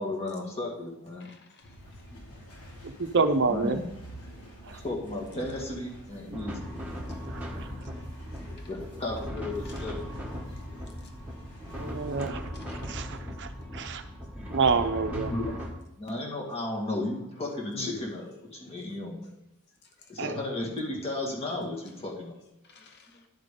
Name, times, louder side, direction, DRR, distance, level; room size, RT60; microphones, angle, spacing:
voice 1, 0.0-1.3 3.5-3.9 4.7-6.7 8.5-10.2 11.1-11.2 13.2-13.3 14.4-14.5 14.9-15.6 16.0-19.3 20.1-22.4, left 2 dB, 25° left, -1 dB, 1.9 m, -34 dB
voice 2, 1.2-1.8 8.6-8.7 11.0-11.1 12.5-13.0 17.7-18.0 20.8-21.0 22.6-23.2, left 3 dB, 50° left, 6 dB, 0.7 m, -48 dB
sound 1, 1.6-12.4, equal, 85° left, 2.5 m, -48 dB
voice 3, 2.8-3.8 4.6-4.8 7.3-7.7 11.7-14.0 14.5-15.3 20.2-20.4, right 4 dB, 50° right, 8 dB, 0.6 m, -28 dB
sound 2, 6.3-15.7, equal, 5° right, 1.6 m, -38 dB
10.5 x 7.6 x 3.8 m, 0.86 s
head